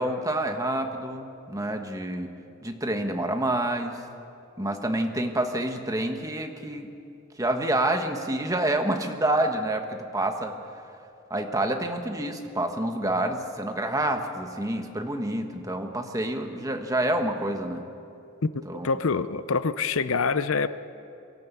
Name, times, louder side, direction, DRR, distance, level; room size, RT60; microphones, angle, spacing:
voice 1, 0.0-2.3 2.6-4.0 4.6-6.9 7.4-10.5 11.3-17.9 18.7-18.9, right 1 dB, 15° right, 5 dB, 1.4 m, -28 dB
voice 2, 18.5-20.7, left 5 dB, 70° left, 14 dB, 0.7 m, -26 dB
23.5 x 13.5 x 8.4 m, 2.8 s
head